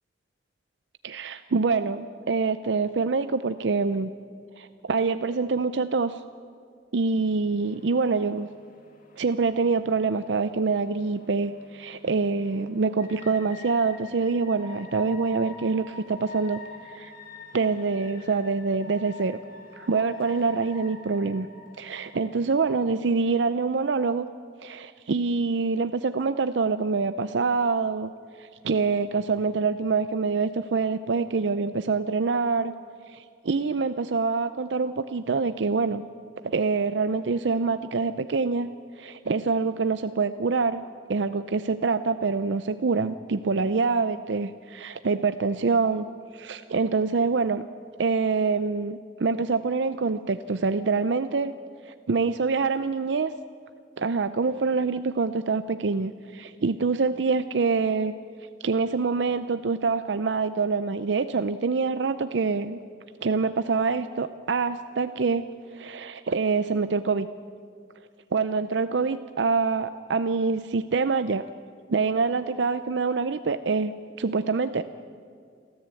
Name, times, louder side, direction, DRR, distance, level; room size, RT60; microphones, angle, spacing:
voice 1, 1.0-4.1 4.6-6.2 6.9-8.5 9.2-16.6 16.9-17.1 17.5-19.4 19.8-21.5 21.8-24.3 24.6-28.1 28.4-32.7 33.1-36.1 36.4-38.7 39.0-40.8 41.1-46.1 46.3-47.6 48.0-51.5 51.9-53.3 54.0-58.1 58.6-62.8 63.2-65.4 65.7-67.3 68.3-71.4 71.9-73.9 74.2-74.8, right 4 dB, 80° right, 11 dB, 0.6 m, -25 dB
sound 1, 7.6-23.5, left 2 dB, 50° left, 2.7 m, -48 dB
29.0 x 13.5 x 8.4 m, 2.2 s
head